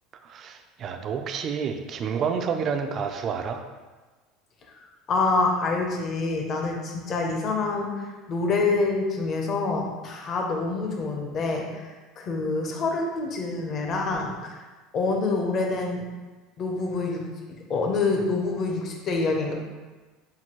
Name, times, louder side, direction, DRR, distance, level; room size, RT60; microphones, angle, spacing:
voice 1, 0.2-3.6, right 6 dB, 30° right, 6 dB, 0.3 m, -29 dB
voice 2, 4.8-14.6 14.9-16.0 16.6-17.2 17.5-19.5, left 3 dB, 30° left, 1 dB, 0.6 m, -27 dB
5.8 x 2.6 x 2.9 m, 1.3 s
cardioid pair, 160°, 0 cm